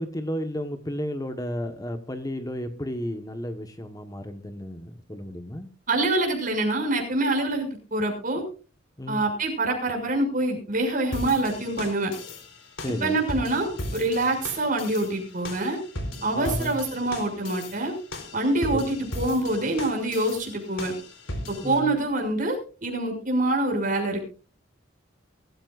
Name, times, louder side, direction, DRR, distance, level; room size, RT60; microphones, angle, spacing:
voice 1, 0.0-5.7 9.0-9.2 12.8-13.2 16.3-16.7 18.7-18.9 21.6-22.0, equal, 20° left, 7 dB, 1.3 m, -33 dB
voice 2, 5.9-8.4 9.1-12.1 12.9-15.8 16.2-17.9 18.3-20.9 21.5-24.2, right 2 dB, 45° right, 3 dB, 6.3 m, -25 dB
sound 1, 11.1-21.8, left 1 dB, 85° left, 4.2 m, -37 dB
23.0 x 14.5 x 2.5 m, 0.36 s
head